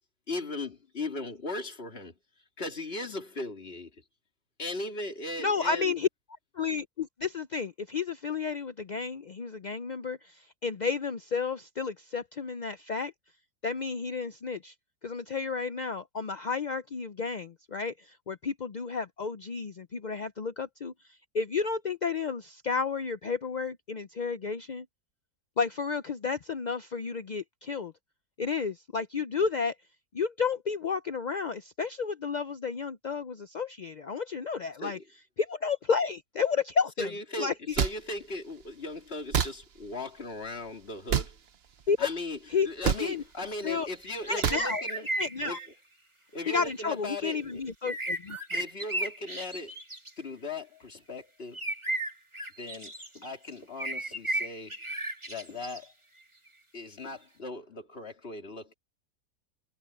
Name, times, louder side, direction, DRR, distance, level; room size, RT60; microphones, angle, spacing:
voice 1, 0.3-2.1 2.6-3.9 4.6-5.9 34.8-35.0 37.0-41.4 42.0-42.4 42.6-45.0 45.4-45.6 46.3-48.0 48.5-49.7 50.2-51.6 52.6-54.7 55.3-55.9 56.7-58.7, left 2 dB, 40° left, 3.1 m, -38 dB
voice 2, 5.4-6.1 6.5-13.1 13.6-14.7 15.0-20.9 21.3-24.9 25.6-27.9 28.4-29.7 30.1-35.0 35.4-37.1 37.4-37.8 41.9-42.1 42.5-43.2 43.6-43.9 44.3-44.9 45.2-45.6 46.5-48.6, left 5 dB, 60° left, 0.4 m, -31 dB
sound 1, 37.8-37.9 39.3-39.5 41.1-41.3 42.8-43.0 44.4-44.6, right 7 dB, 50° right, 0.9 m, -26 dB
sound 2, 44.0-45.7 47.9-50.1 51.5-53.3 53.8-55.8, right 1 dB, 20° right, 2.3 m, -34 dB
omnidirectional pair, 1.6 m